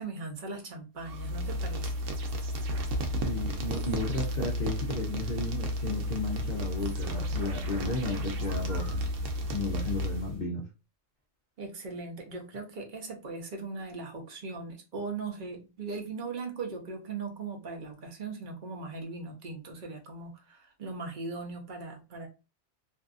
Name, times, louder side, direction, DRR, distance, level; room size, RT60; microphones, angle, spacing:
voice 1, 0.0-1.9 11.6-22.3, right 3 dB, 45° right, 3 dB, 0.8 m, -39 dB
sound 1, 1.0-10.4, equal, 85° right, 1.0 m, -32 dB
voice 2, 3.1-9.0 9.5-10.7, left 2 dB, 55° left, 0 dB, 0.5 m, -34 dB
2.6 x 2.4 x 2.4 m, 0.29 s
omnidirectional pair, 1.3 m